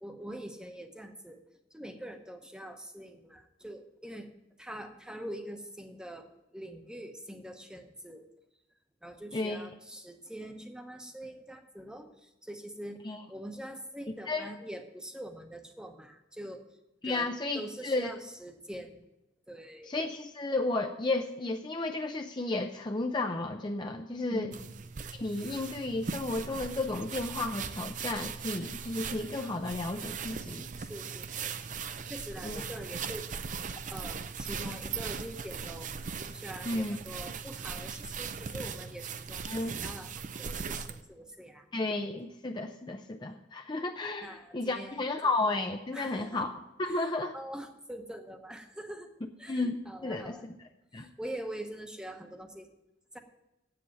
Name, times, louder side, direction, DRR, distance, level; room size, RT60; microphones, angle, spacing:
voice 1, 0.0-1.4 1.7-4.3 4.6-8.2 9.0-16.6 17.0-19.0 19.5-19.9 24.3-24.9 30.8-31.6 32.0-33.3 33.9-35.9 36.3-41.7 44.2-45.0 45.9-46.4 46.9-49.1 49.4-50.4 50.9-52.7 53.1-53.2, right 1 dB, 5° right, 5 dB, 0.9 m, -44 dB
voice 2, 9.3-9.7 13.0-13.2 14.3-14.5 17.0-18.1 19.8-24.5 25.1-30.7 32.4-32.6 36.6-37.0 39.5-39.8 41.7-47.3 49.5-50.5 50.9-51.1, left 2 dB, 25° left, 5 dB, 0.5 m, -33 dB
sound 1, 24.5-41.0, right 6 dB, 45° right, 0.5 m, -39 dB
8.3 x 7.7 x 9.0 m, 0.94 s
head